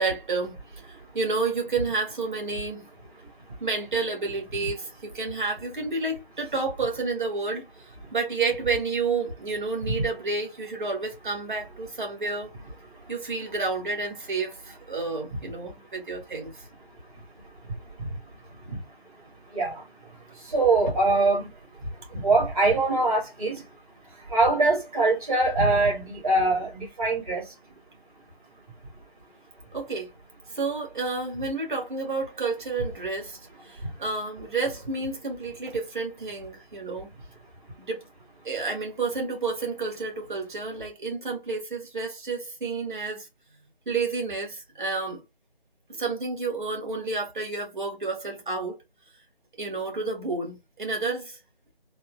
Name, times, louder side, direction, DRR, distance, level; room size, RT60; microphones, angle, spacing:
voice 1, 0.0-2.9 3.6-7.6 8.1-12.5 13.1-16.6 29.7-30.1 30.5-37.1 37.8-38.0 38.4-43.3 43.9-45.2 45.9-48.8 49.6-51.4, right 4 dB, 50° right, 1.9 m, -30 dB
voice 2, 20.4-21.4 22.1-23.6 24.3-27.4, right 2 dB, 35° right, 1.3 m, -23 dB
4.1 x 2.3 x 2.5 m
figure-of-eight pair, 160°, 31 cm